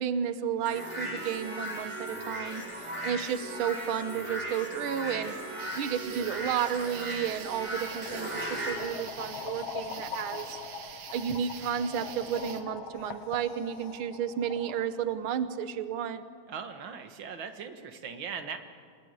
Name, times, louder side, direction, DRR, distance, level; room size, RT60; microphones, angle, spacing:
voice 1, 0.0-5.3 5.7-10.6 11.1-16.2, right 8 dB, 90° right, 11 dB, 1.1 m, -32 dB
sound 1, 0.7-8.7, right 1 dB, 10° right, 6.8 m, -37 dB
sound 2, 5.6-12.6, right 8 dB, 65° right, 2.7 m, -46 dB
sound 3, 7.2-14.8, left 5 dB, 55° left, 2.5 m, -42 dB
voice 2, 16.5-18.6, right 6 dB, 50° right, 7 dB, 1.8 m, -39 dB
29.0 x 19.5 x 9.6 m, 2.1 s
omnidirectional pair, 3.7 m